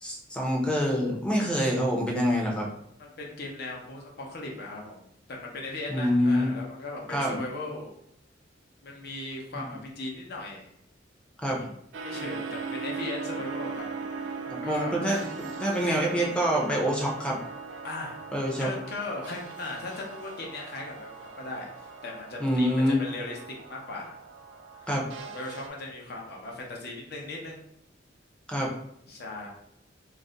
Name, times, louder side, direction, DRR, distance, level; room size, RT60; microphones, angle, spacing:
voice 1, 0.0-2.7 5.9-6.5 7.1-7.4 9.6-9.7 11.4-11.6 14.5-17.4 18.3-18.7 22.4-23.0 24.9-25.1 28.5-28.7, equal, 5° left, -2 dB, 0.5 m, -26 dB
voice 2, 3.0-7.9 8.8-10.7 11.6-11.8 12.0-14.4 14.6-15.0 17.8-18.2 18.6-24.2 24.8-24.9 25.2-27.6 29.1-29.5, left 2 dB, 60° left, -1 dB, 0.7 m, -38 dB
sound 1, 11.9-25.7, right 4 dB, 75° right, 0.4 m, -39 dB
2.5 x 2.1 x 3.7 m, 0.73 s
head